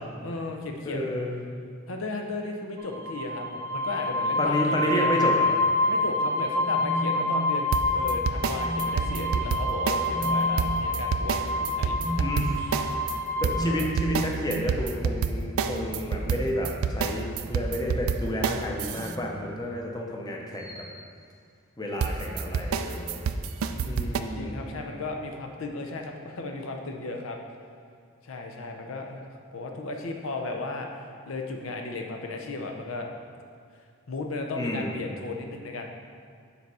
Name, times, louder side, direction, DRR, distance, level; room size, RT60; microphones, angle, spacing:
voice 1, 0.2-1.2 1.9-5.3 5.8-12.3 12.5-13.0 13.6-14.0 21.8-22.5 23.7-27.4 28.2-29.2 29.5-30.9 31.3-33.1 34.1-35.9, left 3 dB, 80° left, 2 dB, 0.6 m, -35 dB
voice 2, 0.8-1.4 4.4-5.6 12.2-12.5 13.4-20.8 21.8-23.2 23.9-24.7 34.5-35.0, left 1 dB, 20° left, 0 dB, 0.7 m, -30 dB
sound 1, 2.8-13.6, left 2 dB, 55° right, 0.7 m, -27 dB
sound 2, 6.6-7.9 8.5-9.3 10.1-10.6 12.0-12.3 13.5-14.5 16.0-17.9 18.9-19.4 20.6-20.9, right 1 dB, ahead, 0.9 m, -35 dB
sound 3, 7.7-10.3 10.6-13.2 13.4-19.1 22.0-24.2, right 5 dB, 85° right, 0.4 m, -28 dB
6.9 x 4.1 x 4.8 m, 2.2 s
head